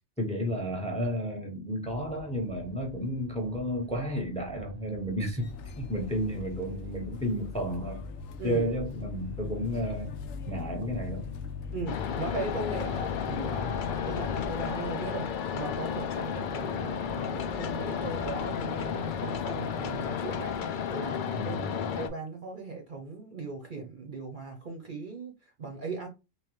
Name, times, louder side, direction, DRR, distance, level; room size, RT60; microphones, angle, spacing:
voice 1, 0.2-5.5 5.7-8.0 8.4-10.1 10.5-11.3 21.4-21.8, equal, 5° left, 0.9 m, -32 dB
sound 1, 1.8-20.6, right 4 dB, 70° right, 0.4 m, -48 dB
sound 2, 5.4-14.7, left 7 dB, 85° left, 1.0 m, -40 dB
voice 2, 11.7-26.1, right 3 dB, 45° right, 0.8 m, -38 dB
sound 3, 11.9-22.1, left 8 dB, 60° left, 0.5 m, -33 dB
3.7 x 3.0 x 3.1 m
omnidirectional pair, 1.3 m